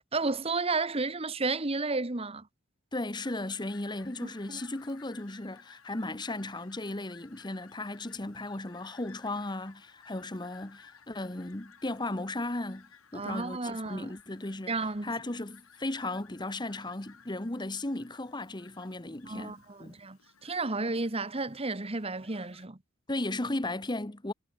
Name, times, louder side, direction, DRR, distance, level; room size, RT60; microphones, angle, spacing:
voice 1, 0.1-2.5 4.2-4.6 13.1-14.1 14.7-15.1 19.2-22.8, right 3 dB, 30° right, 1.2 m, -32 dB
voice 2, 2.9-12.9 13.1-19.9 23.1-24.3, left 2 dB, 20° left, 1.3 m, -36 dB
Fowl, 3.2-22.7, left 6 dB, 85° left, 4.0 m, -58 dB
head